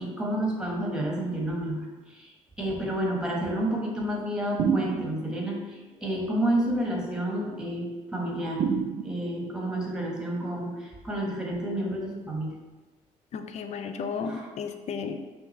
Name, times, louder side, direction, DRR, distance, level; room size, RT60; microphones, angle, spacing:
voice 1, 0.0-2.3 2.6-8.6 9.0-12.5 14.2-14.5, right 1 dB, 5° right, -2 dB, 1.3 m, -30 dB
sound 1, 4.6-5.4 8.6-9.5, right 6 dB, 60° right, 0.5 m, -28 dB
voice 2, 13.3-15.2, left 5 dB, 50° left, 8 dB, 0.4 m, -33 dB
5.6 x 2.6 x 3.2 m, 1.2 s
supercardioid pair, 75°, 14 cm